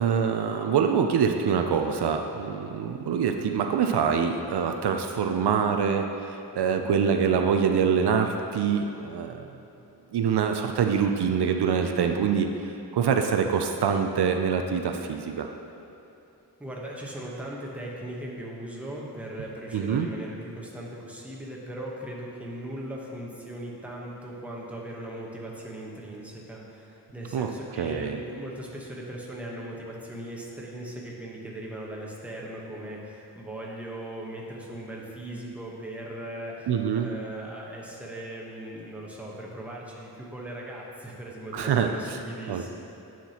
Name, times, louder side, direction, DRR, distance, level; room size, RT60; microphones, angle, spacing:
voice 1, 0.0-9.5 10.1-12.5 12.9-15.5 19.7-20.1 27.3-27.5 27.8-28.2 36.7-37.1 41.5-42.2 42.5-42.7, right 7 dB, 75° right, 5 dB, 0.5 m, -25 dB
voice 2, 16.6-42.7, right 1 dB, 5° right, -4 dB, 1.0 m, -39 dB
9.4 x 5.9 x 2.9 m, 2.8 s
wide cardioid pair, 125°, 40 cm